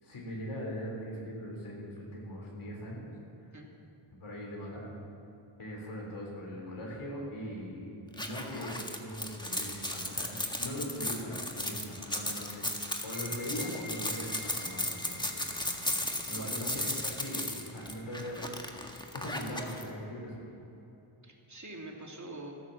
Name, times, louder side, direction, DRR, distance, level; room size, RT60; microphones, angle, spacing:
voice 1, 0.0-3.1 4.2-4.9 5.6-15.4 16.3-18.5 19.1-20.5, equal, 80° left, -2 dB, 3.8 m, -40 dB
sound 1, 8.1-19.8, left 1 dB, 10° left, 1.6 m, -36 dB
sound 2, 12.9-20.4, left 1 dB, 85° right, 2.7 m, -51 dB
voice 2, 16.3-17.0 21.2-22.6, right 2 dB, 35° right, 0 dB, 2.8 m, -45 dB
14.0 x 12.0 x 7.3 m, 3.0 s
cardioid pair, 65°, 50 cm